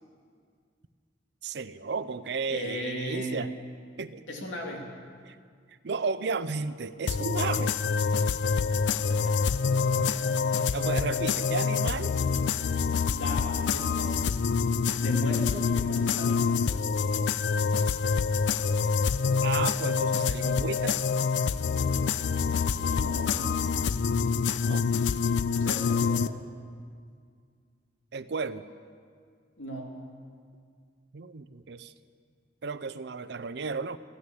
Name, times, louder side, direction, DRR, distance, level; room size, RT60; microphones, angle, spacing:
voice 1, 1.4-3.5 4.0-4.2 5.3-5.4 5.8-7.8 10.7-12.2 19.4-21.0 24.6-24.8 28.1-28.6 31.1-31.9 32.6-34.0, right 4 dB, 60° right, 14 dB, 0.5 m, -33 dB
voice 2, 2.5-3.5 4.3-4.8 8.9-9.5 13.1-14.2 15.0-16.5 22.7-23.6 25.6-26.4 29.6-30.1, equal, 85° left, 0 dB, 2.4 m, -37 dB
sound 1, 7.1-26.3, left 5 dB, 70° left, 0.4 m, -26 dB
14.0 x 9.6 x 8.5 m, 2.1 s
head